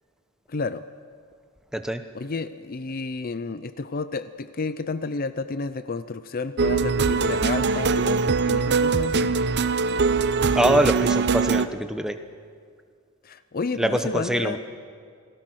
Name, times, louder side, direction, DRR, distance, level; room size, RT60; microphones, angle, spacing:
voice 1, 0.5-0.8 2.1-9.3 13.2-14.6, left 4 dB, 40° left, 13 dB, 0.5 m, -31 dB
sound 1, 6.6-11.7, right 4 dB, 50° right, 0.7 m, -22 dB
voice 2, 10.5-12.2 13.8-14.6, right 1 dB, 5° right, 7 dB, 0.9 m, -24 dB
28.0 x 18.0 x 6.3 m, 2.1 s
head